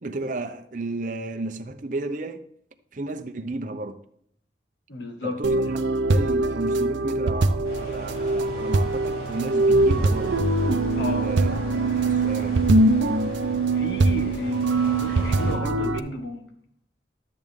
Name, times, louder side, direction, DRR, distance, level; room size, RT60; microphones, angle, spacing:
voice 1, 0.0-2.4 2.9-4.0 5.2-10.5 11.0-12.7 15.1-15.2, right 2 dB, 45° right, 0.7 m, -33 dB
voice 2, 4.9-5.4 11.0-11.3 13.7-16.5, left 1 dB, 80° left, 1.6 m, -33 dB
sound 1, 5.4-16.0, right 2 dB, 90° right, 0.6 m, -22 dB
sound 2, 7.6-15.5, equal, 60° left, 4.4 m, -39 dB
12.5 x 7.6 x 3.6 m
head